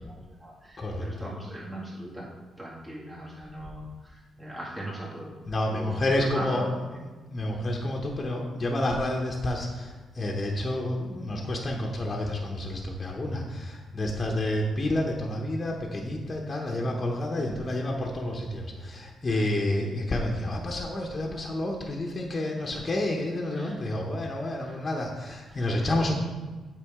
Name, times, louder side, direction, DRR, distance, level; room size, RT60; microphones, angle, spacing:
voice 1, 0.0-2.3 2.6-5.4 5.7-7.0 16.5-16.9 19.3-19.5 20.4-20.5 22.3-22.5 22.7-22.9 23.5-24.0 24.6-25.0 25.5-25.9, right 1 dB, 20° right, -5 dB, 2.2 m, -41 dB
voice 2, 5.5-6.7 7.3-26.1, left 1 dB, 35° left, -1 dB, 1.0 m, -29 dB
8.2 x 5.2 x 3.7 m, 1.3 s
cardioid pair, 65°, 0 cm